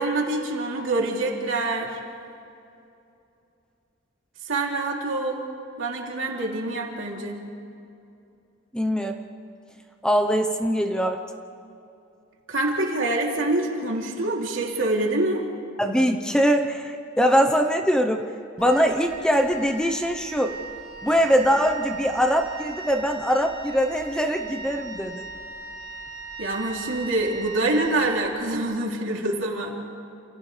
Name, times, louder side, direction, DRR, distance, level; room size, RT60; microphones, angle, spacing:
voice 1, 0.0-2.0 4.5-5.4 5.8-7.4 12.5-15.4 26.4-29.7, right 2 dB, 75° right, -1 dB, 3.2 m, -26 dB
voice 2, 8.7-9.2 10.0-11.2 15.8-18.2 18.6-20.6 21.0-25.2, equal, 5° left, 4 dB, 0.9 m, -22 dB
Wind instrument woodwind instrument, 18.6-28.7, right 4 dB, 85° left, 7.5 m, -38 dB
30.0 x 28.5 x 3.4 m, 2.6 s
head